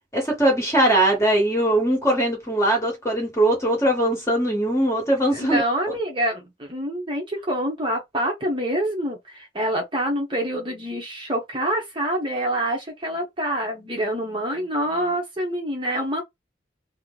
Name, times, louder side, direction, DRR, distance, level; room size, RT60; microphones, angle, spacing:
voice 1, 0.1-5.6, right 1 dB, 15° left, 1.3 m, -21 dB
voice 2, 5.3-16.2, right 1 dB, 25° right, 0.8 m, -26 dB
3.0 x 2.0 x 3.8 m
head